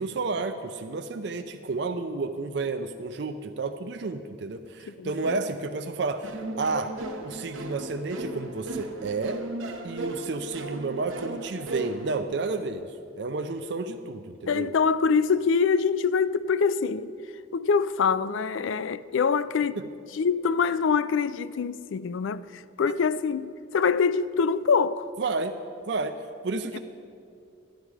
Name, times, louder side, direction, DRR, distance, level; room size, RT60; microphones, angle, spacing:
voice 1, 0.0-6.9 7.2-9.4 9.8-12.9 13.2-14.7 22.8-23.0 25.2-25.5 25.9-26.2 26.4-26.8, right 3 dB, 55° right, 0.4 m, -31 dB
voice 2, 4.9-5.4 14.5-17.1 17.5-19.8 20.1-25.1 26.7-26.8, left 5 dB, 75° left, 0.4 m, -25 dB
sound 1, 6.2-12.2, right 2 dB, 85° right, 1.1 m, -36 dB
13.0 x 10.5 x 4.8 m
head